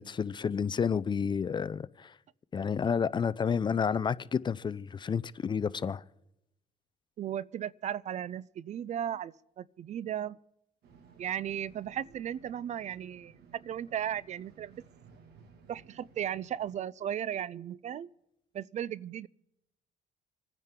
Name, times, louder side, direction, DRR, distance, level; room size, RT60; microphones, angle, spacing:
voice 1, 0.0-2.1 2.5-6.0, left 6 dB, 25° left, 0.4 m, -30 dB
voice 2, 7.2-10.4 11.2-14.8 15.7-18.1 18.5-19.3, right 10 dB, 45° right, 0.4 m, -36 dB
sound 1, 10.8-16.8, right 6 dB, 70° right, 2.1 m, -58 dB
27.0 x 9.7 x 3.7 m
cardioid pair, 110°, 17 cm